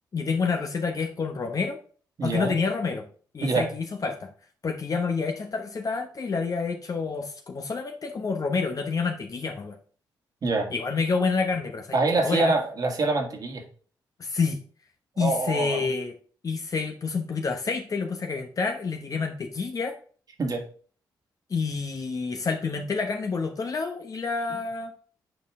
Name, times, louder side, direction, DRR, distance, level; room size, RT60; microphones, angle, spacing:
voice 1, 0.1-1.8 2.2-3.1 3.3-4.3 4.6-9.8 10.7-12.6 14.2-14.6 15.2-16.1 16.4-20.0 21.5-24.9, left 4 dB, 50° left, 4 dB, 1.0 m, -28 dB
voice 2, 2.2-2.6 3.4-3.7 10.4-10.7 11.9-13.6 15.2-15.9 20.4-20.6, right 3 dB, 55° right, 3 dB, 2.0 m, -25 dB
8.0 x 4.4 x 3.7 m, 0.43 s
cardioid pair, 70°, 8 cm